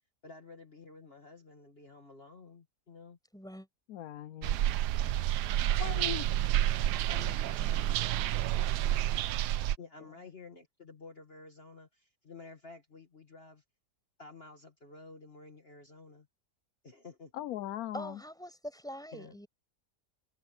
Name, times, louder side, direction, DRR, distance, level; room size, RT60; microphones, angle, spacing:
voice 1, 0.2-3.2 7.1-7.9 9.8-13.6 14.2-16.3 16.8-17.4 19.1-19.4, left 4 dB, 35° left, 2.2 m, -51 dB
voice 2, 3.3-3.7 17.9-19.5, equal, ahead, 6.1 m, -43 dB
voice 3, 3.9-4.6 5.8-6.3 17.3-18.2, left 12 dB, 70° left, 1.0 m, -39 dB
sound 1, 4.4-9.7, right 13 dB, 90° right, 1.2 m, -29 dB
omnidirectional pair, 1.7 m